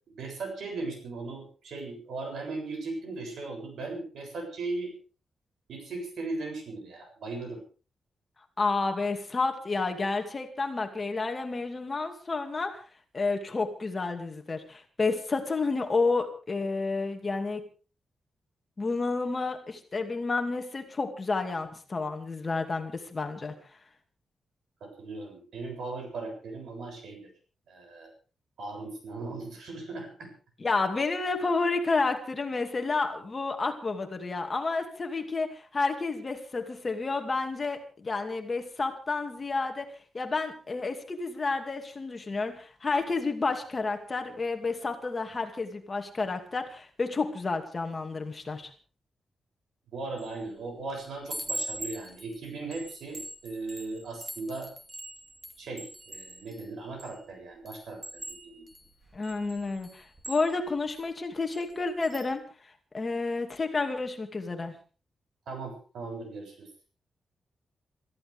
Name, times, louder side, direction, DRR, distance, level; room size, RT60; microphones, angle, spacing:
voice 1, 0.0-4.9 5.7-7.6 24.8-27.3 27.7-28.1 28.6-30.3 49.9-54.7 55.6-58.7 65.5-66.9, right 3 dB, 80° right, 3 dB, 7.5 m, -38 dB
voice 2, 8.6-12.7 13.1-17.6 18.8-23.5 30.6-39.8 40.1-48.7 59.1-62.4 62.9-64.7, left 3 dB, 25° left, 4 dB, 2.5 m, -30 dB
Chime, 50.2-50.5 50.9-57.2 57.7-61.0 61.5-61.7 62.0-62.3, right 2 dB, 15° right, 2.4 m, -42 dB
27.5 x 14.5 x 3.6 m, 0.37 s
wide cardioid pair, 165°, 0 cm